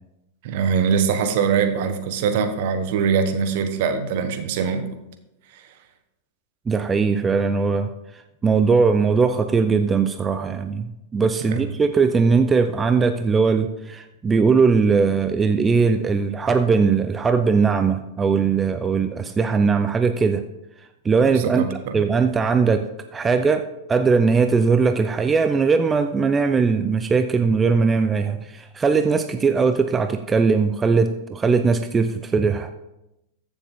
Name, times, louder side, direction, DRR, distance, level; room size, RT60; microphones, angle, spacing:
voice 1, 0.4-4.8 11.5-11.6 21.3-22.1, right 6 dB, 60° right, 8 dB, 1.3 m, -22 dB
voice 2, 6.7-20.4 21.0-21.6 21.9-22.8 23.1-23.6 23.9-32.7, right 5 dB, 20° right, 8 dB, 0.6 m, -20 dB
14.5 x 7.1 x 3.7 m, 0.90 s
hypercardioid pair, 100°, 0 cm